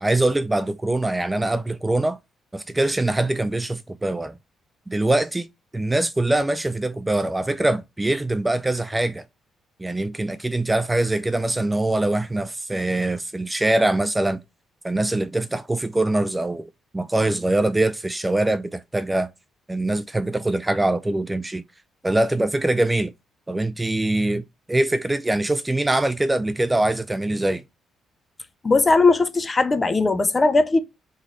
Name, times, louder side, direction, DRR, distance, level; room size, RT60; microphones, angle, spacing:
voice 1, 0.0-2.2 2.5-4.3 4.9-5.5 5.7-9.2 9.8-14.4 14.8-19.3 19.7-21.6 22.0-23.1 23.5-27.6, right 2 dB, 15° right, 0.3 m, -23 dB
voice 2, 28.6-30.8, left 3 dB, 25° left, 0.6 m, -18 dB
3.7 x 3.1 x 4.0 m
cardioid pair, 90°, 0 cm